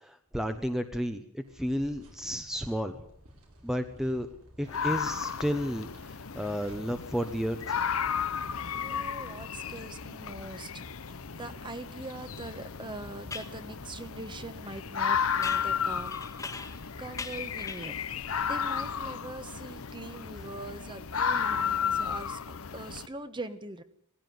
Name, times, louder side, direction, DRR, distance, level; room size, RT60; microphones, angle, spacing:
voice 1, 0.0-3.0 3.6-4.3 4.6-7.8, equal, ahead, 7 dB, 1.0 m, -32 dB
sound 1, 1.5-20.4, equal, 85° right, 5.7 m, -56 dB
sound 2, 4.7-23.1, left 7 dB, 70° left, 0.8 m, -33 dB
voice 2, 8.7-16.5 17.0-18.0 18.4-23.8, right 2 dB, 20° right, 11 dB, 1.2 m, -42 dB
sound 3, 12.3-12.4 13.3-13.6 15.4-16.9 17.2-18.1, left 4 dB, 15° left, 1.6 m, -41 dB
19.0 x 15.5 x 9.5 m, 0.67 s
head